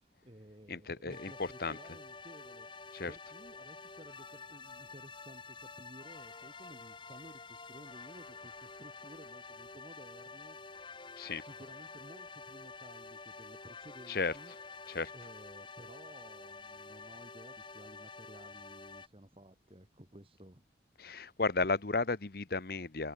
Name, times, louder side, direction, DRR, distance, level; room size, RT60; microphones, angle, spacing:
voice 1, 0.0-10.6 11.4-14.5 15.1-20.6, right 1 dB, 30° right, 2.5 m, -55 dB
voice 2, 0.7-1.3 1.6-1.8 2.9-3.1 11.2-11.4 14.1-14.3 14.9-15.1 21.0-23.1, left 3 dB, 55° left, 1.0 m, -34 dB
sound 1, 1.1-19.1, left 4 dB, 25° left, 3.4 m, -49 dB
open air
head